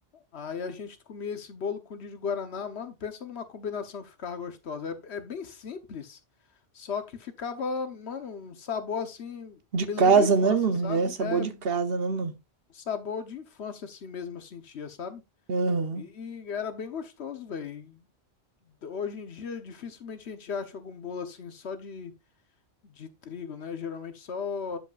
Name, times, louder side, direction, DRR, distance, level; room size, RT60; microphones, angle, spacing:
voice 1, 0.3-6.2 6.7-10.6 10.8-11.6 12.7-15.2 15.9-18.0 18.8-22.1 22.8-24.8, left 6 dB, 80° left, 1.3 m, -36 dB
voice 2, 9.7-12.3 15.5-16.1, right 5 dB, 65° right, 1.2 m, -24 dB
12.5 x 5.4 x 2.4 m
omnidirectional pair, 1.1 m